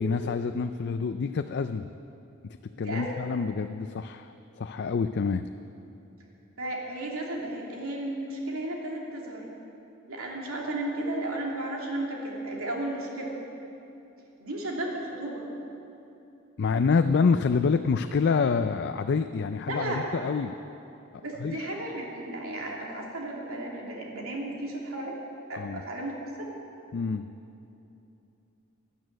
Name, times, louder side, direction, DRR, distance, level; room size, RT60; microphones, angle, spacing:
voice 1, 0.0-1.9 2.4-5.4 16.6-20.5 21.4-21.6 25.5-25.8 26.9-27.3, left 5 dB, 55° left, 9 dB, 0.4 m, -27 dB
voice 2, 2.8-3.2 6.6-9.5 10.1-13.4 14.4-15.4 19.7-20.0 21.2-25.2 25.5-26.5, right 1 dB, 85° right, -2 dB, 2.9 m, -34 dB
12.5 x 11.0 x 9.2 m, 2.9 s
head